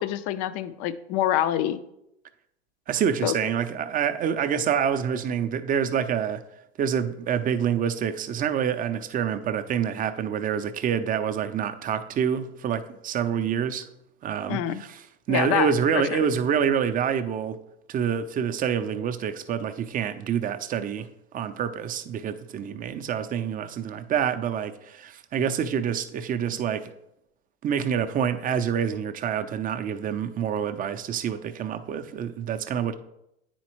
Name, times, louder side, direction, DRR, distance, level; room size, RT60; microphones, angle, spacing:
voice 1, 0.0-1.8 3.2-3.3 14.5-14.8 15.3-16.2, left 11 dB, 45° left, 0.5 m, -26 dB
voice 2, 2.9-6.4 6.8-13.8 14.2-15.0 15.3-17.6 17.9-21.1 21.3-26.9 27.6-32.9, right 8 dB, 25° right, 0.5 m, -27 dB
9.4 x 4.3 x 3.0 m
hypercardioid pair, 95°, 33 cm